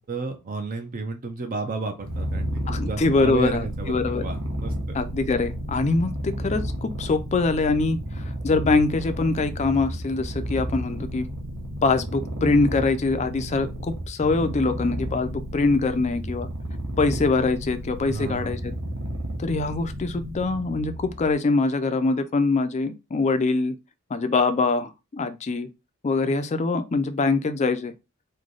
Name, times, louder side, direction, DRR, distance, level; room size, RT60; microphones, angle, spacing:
voice 1, 0.0-4.7 18.0-18.6, right 4 dB, 40° right, 0.5 m, -32 dB
Purr, 2.0-21.3, equal, 65° right, 0.9 m, -32 dB
voice 2, 2.7-4.2 4.9-11.3 11.8-16.5 17.0-18.7 19.4-23.7 24.1-25.7 26.0-27.9, left 3 dB, 30° left, 0.4 m, -24 dB
3.2 x 2.2 x 3.8 m
head